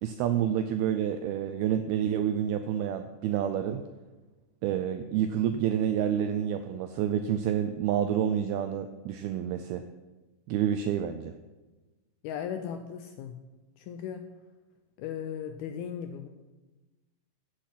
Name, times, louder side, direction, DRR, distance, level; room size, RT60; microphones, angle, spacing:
voice 1, 0.0-3.9 4.6-9.8 10.5-11.3, right 9 dB, 85° right, 9 dB, 2.2 m, -28 dB
voice 2, 12.2-13.4 13.8-14.3 15.0-16.3, left 8 dB, 80° left, 7 dB, 2.2 m, -37 dB
15.5 x 8.4 x 5.9 m, 1.2 s
omnidirectional pair, 5.1 m